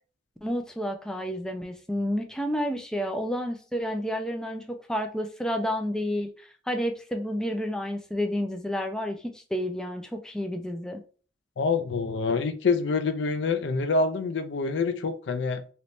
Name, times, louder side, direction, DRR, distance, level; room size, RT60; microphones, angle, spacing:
voice 1, 0.4-11.0, equal, 5° left, 0.3 m, -30 dB
voice 2, 11.6-15.6, left 4 dB, 85° left, 0.4 m, -26 dB
2.9 x 2.6 x 3.3 m
head